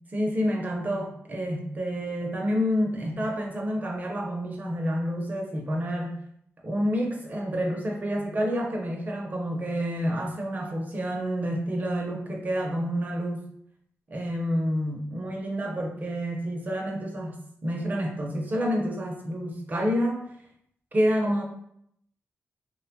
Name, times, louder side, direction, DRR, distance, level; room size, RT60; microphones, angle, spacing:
voice 1, 0.1-6.2 6.6-13.5 14.1-20.2 20.9-21.4, equal, 30° right, 0 dB, 0.5 m, -28 dB
2.9 x 2.1 x 2.6 m, 0.70 s
wide cardioid pair, 125°, 5 cm